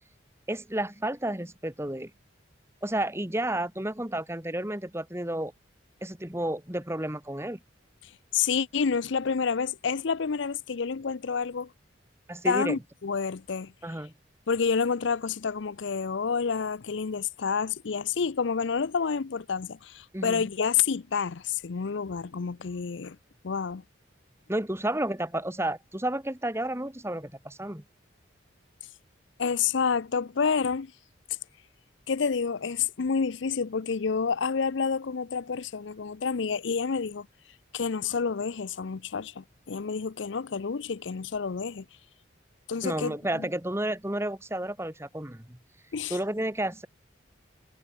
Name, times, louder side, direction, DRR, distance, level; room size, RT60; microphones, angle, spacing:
voice 1, 0.5-2.1 2.8-5.5 6.0-7.6 12.3-12.8 13.8-14.1 20.1-20.4 24.5-27.8 42.8-45.6 46.1-46.9, right 1 dB, 15° right, 1.8 m, -31 dB
voice 2, 8.0-11.7 12.4-13.7 14.5-23.2 23.4-23.8 29.4-30.9 32.1-37.3 37.7-41.8 42.7-43.5 45.9-46.2, left 6 dB, 65° left, 0.5 m, -29 dB
head